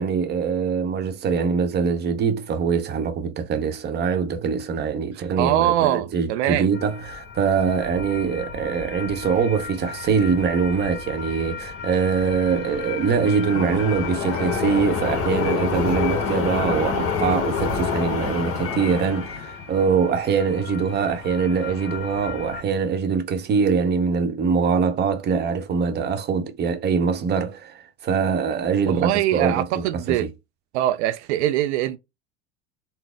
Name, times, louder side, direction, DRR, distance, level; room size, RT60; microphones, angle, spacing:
voice 1, 0.0-30.3, right 6 dB, 30° right, 0.8 m, -23 dB
voice 2, 5.4-6.7 28.9-30.3 30.7-32.0, right 13 dB, 85° right, 0.5 m, -22 dB
sound 1, 6.7-22.6, left 5 dB, 40° left, 1.2 m, -29 dB
4.1 x 2.0 x 3.4 m
supercardioid pair, 120°, 33 cm